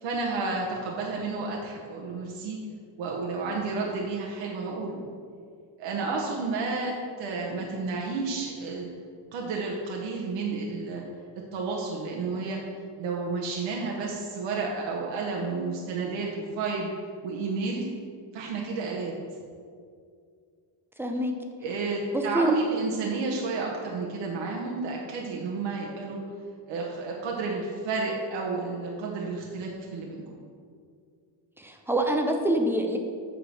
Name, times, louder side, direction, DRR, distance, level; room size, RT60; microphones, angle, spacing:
voice 1, 0.0-2.6 3.0-5.0 5.8-8.9 9.3-11.0 11.5-12.6 13.0-16.9 17.2-17.9 18.3-19.1 21.6-26.2 26.7-30.3, right 4 dB, 70° right, -2 dB, 1.1 m, -31 dB
voice 2, 21.0-21.3 22.1-22.5 31.6-33.0, right 1 dB, 5° right, 3 dB, 0.4 m, -26 dB
8.2 x 3.8 x 6.2 m, 2.2 s
cardioid pair, 160°, 46 cm